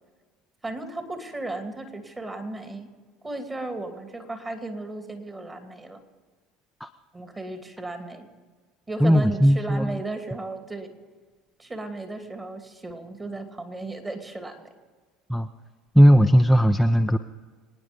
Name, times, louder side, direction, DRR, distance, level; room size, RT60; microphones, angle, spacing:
voice 1, 0.6-2.9 3.2-6.0 7.1-8.3 8.9-10.9 11.6-14.7, right 2 dB, 20° right, 6 dB, 2.6 m, -35 dB
voice 2, 9.0-10.0 15.3-15.5 15.9-17.2, equal, ahead, 5 dB, 0.7 m, -17 dB
26.0 x 9.7 x 5.3 m, 1.4 s
hypercardioid pair, 70°, 0 cm